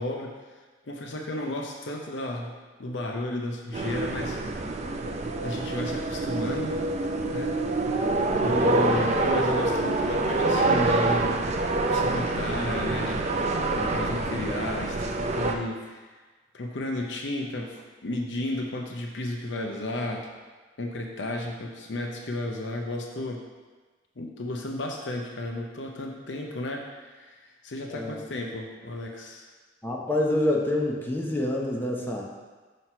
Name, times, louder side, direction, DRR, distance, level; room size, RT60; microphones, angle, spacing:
voice 1, 0.0-4.8 5.4-6.8 7.3-7.5 8.3-11.4 11.9-13.2 13.8-16.2 16.5-20.3 20.8-23.4 24.2-29.5, left 1 dB, 90° left, 2 dB, 0.7 m, -33 dB
sound 1, 3.7-15.5, right 2 dB, 40° right, 0.4 m, -26 dB
voice 2, 8.4-9.0 27.9-28.2 29.8-32.2, left 1 dB, 10° left, -2 dB, 0.8 m, -27 dB
5.9 x 3.1 x 5.6 m, 1.3 s
head